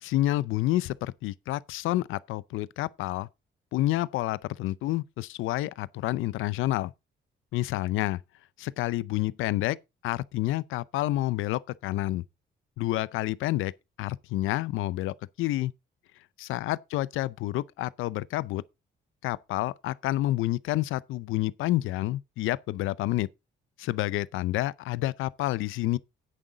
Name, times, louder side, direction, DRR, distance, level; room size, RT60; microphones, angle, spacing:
voice 1, 0.0-3.3 3.7-6.9 7.5-8.2 8.6-9.8 10.0-12.2 12.8-13.7 14.0-15.7 16.4-18.6 19.2-23.3 23.8-26.0, left 16 dB, 90° left, 0.6 m, -29 dB
10.0 x 9.0 x 3.9 m
cardioid pair, 90°, 20 cm